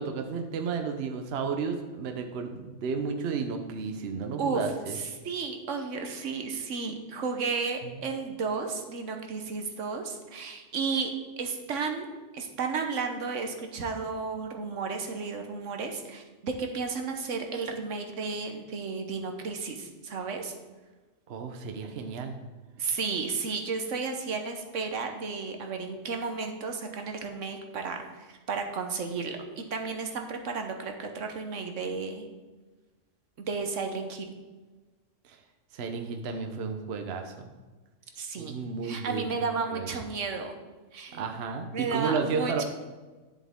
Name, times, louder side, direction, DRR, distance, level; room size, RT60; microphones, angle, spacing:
voice 1, 0.0-5.0 21.3-22.4 35.2-35.4 35.7-37.5 38.4-39.3 39.7-39.9 41.1-42.6, right 5 dB, 60° right, 5 dB, 1.0 m, -32 dB
voice 2, 4.9-12.1 12.3-20.5 22.8-32.3 33.4-34.3 38.2-38.5 38.8-40.6 40.9-41.2 41.7-42.6, right 4 dB, 75° right, 5 dB, 1.3 m, -33 dB
10.5 x 7.3 x 3.6 m, 1.3 s
omnidirectional pair, 1.3 m